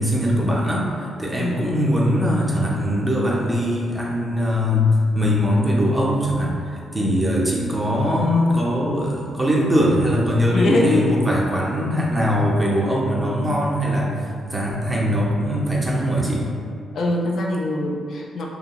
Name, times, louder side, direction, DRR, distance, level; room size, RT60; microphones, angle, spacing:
voice 1, 0.0-6.5 6.9-16.5, equal, 15° right, -4 dB, 0.5 m, -21 dB
voice 2, 10.5-11.2 16.9-18.5, left 2 dB, 65° left, -1 dB, 0.3 m, -22 dB
2.8 x 2.5 x 2.3 m, 2.2 s
cardioid pair, 105°, 0 cm